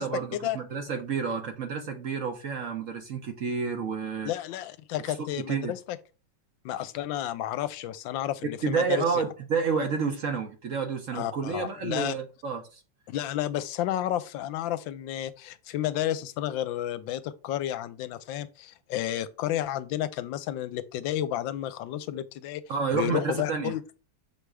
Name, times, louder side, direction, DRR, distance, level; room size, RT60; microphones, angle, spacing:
voice 1, 0.0-4.3 5.1-5.2 5.5-5.7 8.6-12.8 22.7-23.7, right 5 dB, 55° right, 1.0 m, -30 dB
voice 2, 4.2-6.0 6.6-9.0 11.1-12.1 13.1-22.6 22.9-23.8, left 12 dB, 80° left, 1.3 m, -31 dB
6.4 x 3.4 x 4.8 m
omnidirectional pair, 2.1 m